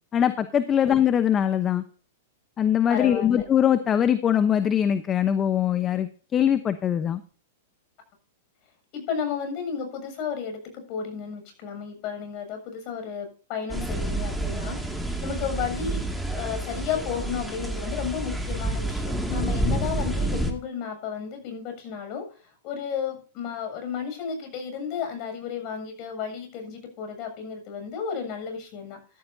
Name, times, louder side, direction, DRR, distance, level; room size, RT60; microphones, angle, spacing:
voice 1, 0.1-1.8 2.6-7.2, left 9 dB, 25° left, 11 dB, 0.9 m, -22 dB
voice 2, 2.9-3.4 8.9-16.0 16.3-29.2, left 7 dB, 45° left, 5 dB, 7.4 m, -33 dB
sound 1, 13.7-20.5, right 1 dB, ahead, 2.3 m, -29 dB
14.5 x 12.5 x 2.8 m, 0.38 s
hypercardioid pair, 115°, 0 cm